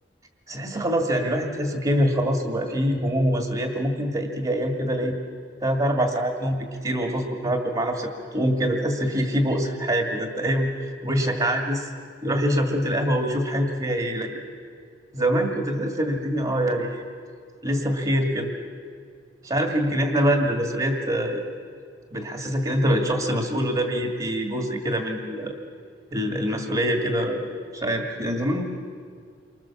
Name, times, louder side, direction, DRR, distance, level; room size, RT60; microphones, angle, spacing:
voice 1, 0.5-5.2 5.6-11.9 12.2-14.3 15.1-17.0 17.6-18.6 19.4-21.5 22.1-25.6 26.1-28.7, equal, 30° right, 3 dB, 2.1 m, -24 dB
28.5 x 25.0 x 7.3 m, 2.2 s
head